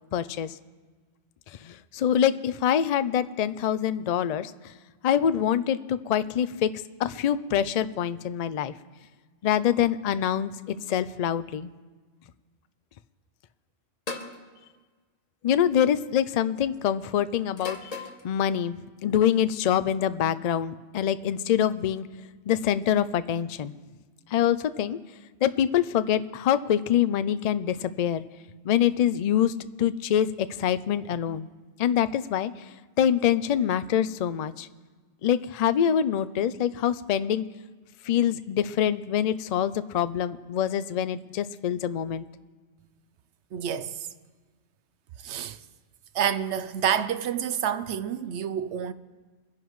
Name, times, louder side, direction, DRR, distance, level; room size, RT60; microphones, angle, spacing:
voice 1, 0.1-0.5 1.6-4.5 5.0-6.7 7.0-8.7 9.4-11.7 15.4-17.9 18.2-22.1 22.5-23.7 24.3-25.0 25.4-28.2 28.6-29.5 29.8-31.5 31.8-32.5 33.0-34.7 35.2-37.4 38.0-42.3, left 9 dB, 65° left, 0.4 m, -25 dB
sound 1, 14.1-14.4 15.6-15.9 17.6-18.2, left 3 dB, 35° left, 1.0 m, -36 dB
voice 2, 43.5-44.1 45.2-45.6 46.1-48.9, right 9 dB, 75° right, 0.9 m, -28 dB
23.5 x 10.5 x 3.1 m
omnidirectional pair, 1.2 m